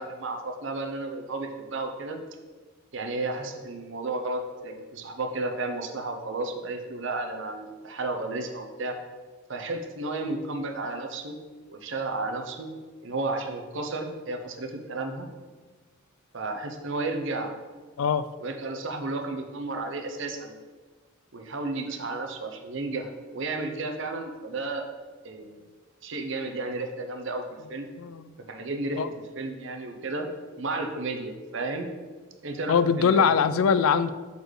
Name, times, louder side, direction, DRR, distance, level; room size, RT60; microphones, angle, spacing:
voice 1, 0.0-2.2 2.9-9.0 9.5-11.4 11.7-12.7 13.0-15.3 16.3-17.5 18.4-20.5 21.3-24.8 25.2-25.6 26.0-27.4 27.7-27.9 28.5-29.0 29.4-30.3 30.6-31.9 32.4-33.3, right 2 dB, 60° right, 4 dB, 0.8 m, -32 dB
voice 2, 28.0-28.3 29.0-29.1 32.7-34.1, left 6 dB, 85° left, 14 dB, 0.4 m, -22 dB
6.7 x 4.1 x 4.8 m, 1.4 s
head